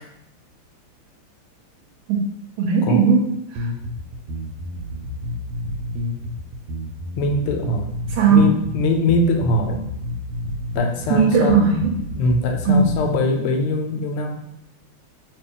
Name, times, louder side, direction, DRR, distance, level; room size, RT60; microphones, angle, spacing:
voice 1, 2.6-3.7 8.1-8.6 11.1-12.0 12.6-13.0, right 4 dB, 75° right, 0 dB, 1.2 m, -17 dB
sound 1, 3.6-13.2, left 1 dB, 90° right, 1.5 m, -30 dB
voice 2, 7.2-7.9 8.3-9.8 10.7-11.6 12.2-14.4, left 2 dB, 90° left, 4 dB, 1.5 m, -22 dB
3.0 x 2.9 x 3.7 m, 0.77 s
omnidirectional pair, 2.4 m